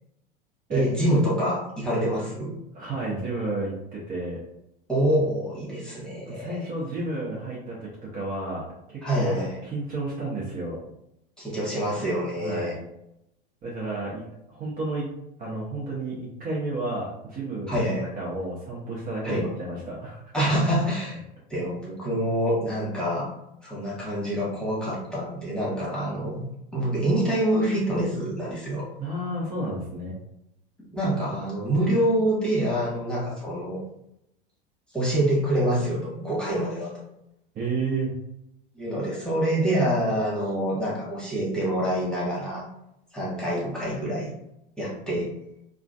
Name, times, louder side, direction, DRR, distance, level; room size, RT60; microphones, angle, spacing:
voice 1, 0.7-2.5 4.9-6.6 9.0-9.6 11.4-12.7 17.7-18.1 19.2-19.4 20.3-21.2 21.5-23.3 23.6-28.9 30.9-33.8 34.9-36.9 38.7-42.7 43.1-44.3 44.8-45.3, right 1 dB, 5° left, -7 dB, 1.5 m, -26 dB
voice 2, 2.7-4.4 6.3-8.6 8.9-10.8 12.4-12.8 13.6-14.2 14.5-15.1 15.4-20.5 29.0-30.1 37.5-38.1, right 2 dB, 30° right, -5 dB, 1.0 m, -31 dB
3.7 x 2.3 x 2.4 m, 0.81 s
hypercardioid pair, 90°, 29 cm